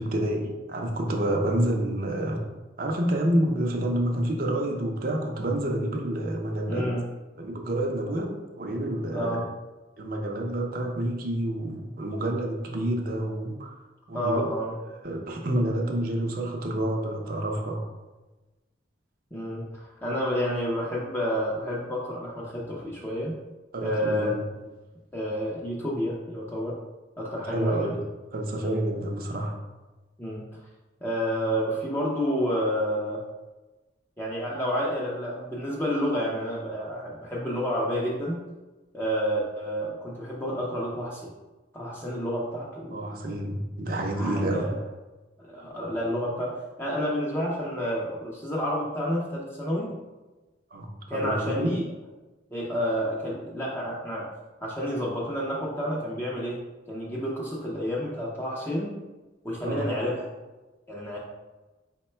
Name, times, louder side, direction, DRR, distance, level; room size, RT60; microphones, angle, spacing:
voice 1, 0.0-2.4 2.8-6.9 7.4-9.4 10.0-13.8 14.1-14.5 15.0-17.8 23.7-24.3 27.3-28.0 28.3-29.6 42.9-44.7 50.7-51.7 59.6-59.9, right 1 dB, 50° right, 2 dB, 0.6 m, -28 dB
voice 2, 6.7-7.1 9.1-9.5 14.1-14.8 19.3-23.3 23.8-24.3 25.1-26.8 27.2-28.0 28.6-28.8 30.2-30.5 31.0-33.2 34.2-38.4 38.9-41.3 41.7-43.0 44.2-44.7 45.4-49.9 51.1-51.8 52.5-54.3 54.6-56.6 56.9-59.0 59.4-60.3 60.9-61.2, equal, 10° left, -5 dB, 0.5 m, -29 dB
4.6 x 2.2 x 4.2 m, 1.2 s
head